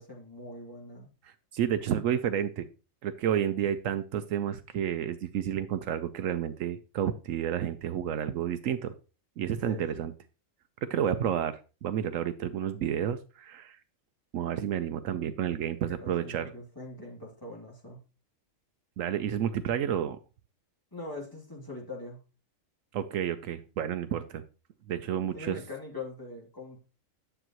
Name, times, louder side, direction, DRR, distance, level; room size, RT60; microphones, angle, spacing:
voice 1, 0.0-1.1 9.6-10.1 15.9-18.0 20.9-22.2 25.3-26.8, left 2 dB, 15° left, -3 dB, 2.6 m, -42 dB
voice 2, 1.2-2.7 3.0-8.9 9.4-10.1 10.9-13.8 14.3-16.5 19.0-20.2 22.9-24.4 24.9-25.6, right 9 dB, 75° right, 10 dB, 1.0 m, -30 dB
10.0 x 7.7 x 3.0 m, 0.32 s
omnidirectional pair, 1.4 m